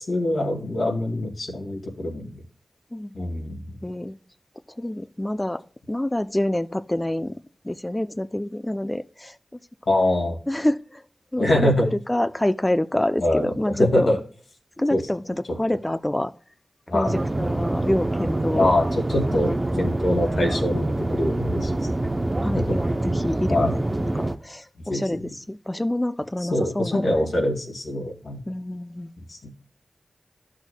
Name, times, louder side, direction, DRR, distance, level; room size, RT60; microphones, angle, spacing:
voice 1, 0.1-2.3 3.1-3.8 9.9-10.4 11.4-11.9 13.2-14.2 14.9-15.0 16.9-17.1 18.6-18.8 19.1-21.8 22.6-22.8 23.5-23.7 24.9-25.3 26.5-28.4 29.3-29.5, left 1 dB, 90° left, 0 dB, 2.0 m, -24 dB
voice 2, 3.8-4.2 4.7-5.6 5.9-7.3 7.6-9.4 10.5-11.0 11.3-14.1 14.8-16.3 16.9-18.7 19.3-19.8 22.4-23.7 24.0-27.3 28.5-29.1, left 1 dB, 20° left, 11 dB, 0.4 m, -27 dB
sound 1, 17.0-24.4, right 2 dB, 35° right, 0.7 m, -25 dB
12.5 x 6.3 x 2.2 m, 0.44 s
cardioid pair, 50°, 0 cm